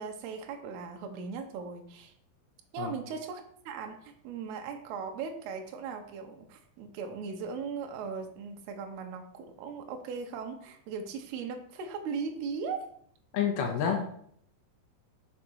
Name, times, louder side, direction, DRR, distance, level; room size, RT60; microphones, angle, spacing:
voice 1, 0.0-2.1 2.7-12.9, right 5 dB, 75° right, 4 dB, 2.7 m, -38 dB
voice 2, 13.3-14.1, left 7 dB, 75° left, 2 dB, 2.4 m, -28 dB
7.1 x 3.9 x 6.3 m, 0.66 s
omnidirectional pair, 5.2 m